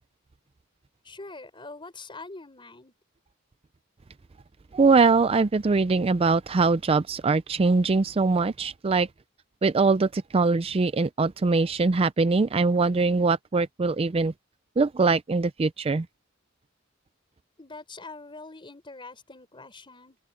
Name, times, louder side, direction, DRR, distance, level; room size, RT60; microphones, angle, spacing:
voice 1, 1.0-2.9 17.6-20.2, left 3 dB, 25° left, 4.2 m, -43 dB
voice 2, 4.7-9.1 9.6-14.3 14.8-16.1, right 4 dB, 30° right, 0.4 m, -22 dB
head